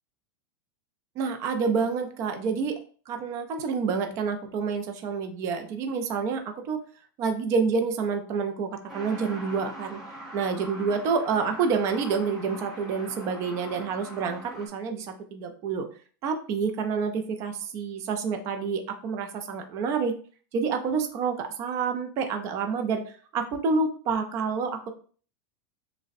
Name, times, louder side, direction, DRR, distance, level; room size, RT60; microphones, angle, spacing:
voice 1, 1.2-2.8 3.1-6.8 7.2-10.0 10.3-15.9 16.2-20.1 20.5-24.9, right 5 dB, 25° right, 5 dB, 0.4 m, -28 dB
Truck, 8.9-14.7, equal, 5° right, 0.7 m, -42 dB
6.3 x 2.1 x 2.5 m, 0.43 s
supercardioid pair, 175°, 12 cm